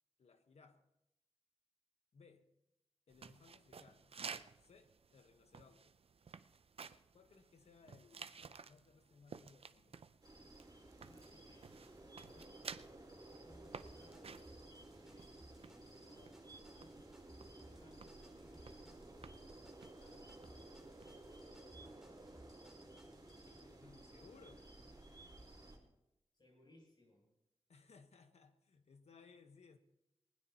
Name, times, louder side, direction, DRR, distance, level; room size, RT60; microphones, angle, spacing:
voice 1, 0.2-0.9 2.1-2.5 3.1-4.2 4.6-6.0 7.1-10.0 23.4-24.7 27.7-29.8, left 5 dB, 85° left, 1.2 m, -63 dB
sound 1, 3.1-21.4, right 5 dB, 65° right, 0.6 m, -55 dB
sound 2, 10.2-25.8, right 2 dB, 35° right, 4.2 m, -56 dB
voice 2, 11.0-12.9 13.2-15.3 15.6-17.1 17.5-19.0 19.8-20.9 21.3-22.2 26.3-27.3, left 1 dB, 45° left, 7.7 m, -67 dB
sound 3, 13.5-23.6, right 1 dB, 5° right, 2.6 m, -63 dB
20.0 x 20.0 x 2.9 m
wide cardioid pair, 75°, 11 cm